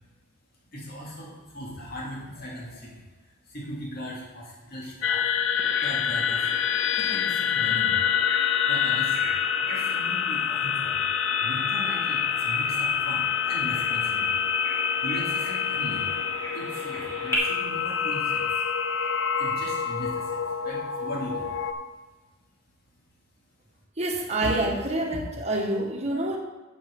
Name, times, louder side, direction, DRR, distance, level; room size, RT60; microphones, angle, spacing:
voice 1, 0.7-5.2 5.8-8.0 8.7-11.1 11.4-16.2 16.5-18.6 19.4-21.6, equal, 50° left, -4 dB, 2.3 m, -39 dB
sound 1, 5.0-21.7, left 7 dB, 65° left, 0.5 m, -26 dB
Bird vocalization bird call bird song, 5.6-17.4, left 1 dB, 15° left, 2.2 m, -40 dB
voice 2, 24.0-26.4, right 1 dB, 35° right, 0 dB, 1.5 m, -27 dB
10.5 x 7.4 x 3.8 m, 1.2 s
head